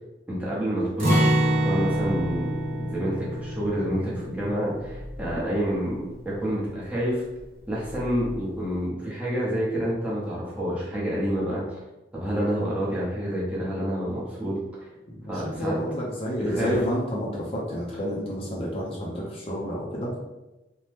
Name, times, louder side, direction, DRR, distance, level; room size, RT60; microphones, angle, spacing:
voice 1, 0.3-7.2 7.7-11.6 12.1-14.9 15.3-15.7 16.3-16.8, equal, 10° right, -7 dB, 0.7 m, -28 dB
Acoustic guitar, 1.0-6.9 7.2-7.4 7.9-8.3, right 1 dB, 55° right, 1.0 m, -27 dB
voice 2, 15.1-20.2, equal, 35° left, -4 dB, 0.5 m, -30 dB
2.8 x 2.1 x 3.2 m, 1.0 s
head